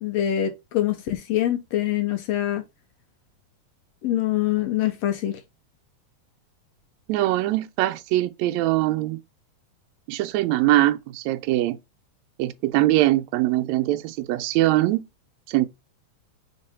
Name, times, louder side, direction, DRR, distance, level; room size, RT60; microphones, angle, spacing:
voice 1, 0.0-2.6 4.0-5.4, left 12 dB, 70° left, 1.7 m, -24 dB
voice 2, 7.1-9.2 10.1-11.8 12.4-15.0 15.5-15.7, right 16 dB, 80° right, 1.9 m, -22 dB
6.0 x 3.8 x 4.3 m
omnidirectional pair, 3.3 m